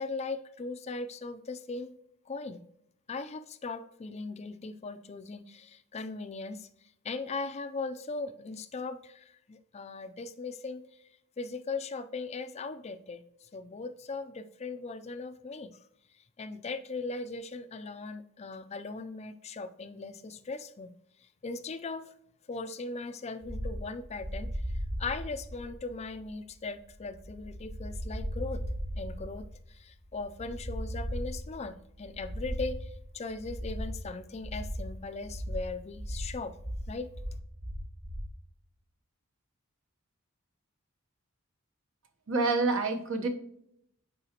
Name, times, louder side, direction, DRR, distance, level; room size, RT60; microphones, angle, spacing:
voice 1, 0.0-1.9 2.3-2.6 3.1-6.7 7.0-10.8 11.4-13.2 13.5-15.7 16.4-20.9 21.4-22.1 22.5-24.5 25.0-28.6 29.0-36.5 36.9-37.1, left 3 dB, 30° left, 10 dB, 0.4 m, -39 dB
sound 1, 23.4-38.3, equal, 25° right, 1.3 m, -38 dB
voice 2, 42.3-43.3, right 3 dB, 65° right, 5 dB, 1.0 m, -27 dB
7.9 x 4.8 x 2.9 m, 0.72 s
head